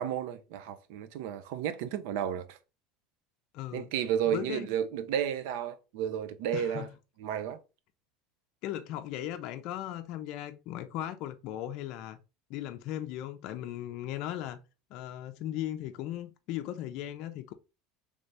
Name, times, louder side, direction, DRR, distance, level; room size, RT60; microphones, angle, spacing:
voice 1, 0.0-2.6 3.7-6.9 7.2-7.6, right 9 dB, 75° right, 0.5 m, -32 dB
voice 2, 3.5-3.9 4.3-4.7 6.5-6.9 8.6-12.2 12.5-14.6 14.9-17.5, left 12 dB, 60° left, 0.4 m, -37 dB
3.3 x 2.7 x 3.3 m
supercardioid pair, 130°, 0 cm